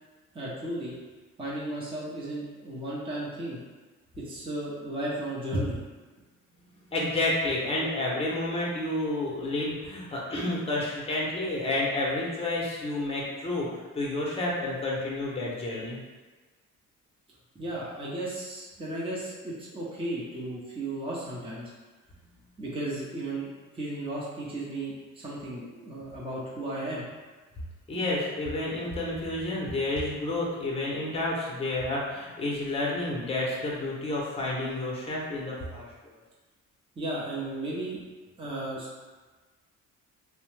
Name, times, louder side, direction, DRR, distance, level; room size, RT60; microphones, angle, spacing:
voice 1, 0.3-0.9 1.4-3.6 4.2-5.8 17.5-21.7 22.6-23.5 23.7-27.0 37.0-38.0 38.4-38.9, right 1 dB, 15° right, -7 dB, 0.7 m, -34 dB
voice 2, 6.9-16.0 27.9-36.2, left 2 dB, 20° left, -4 dB, 0.8 m, -30 dB
2.7 x 2.1 x 3.2 m, 1.3 s
cardioid pair, 85°, 31 cm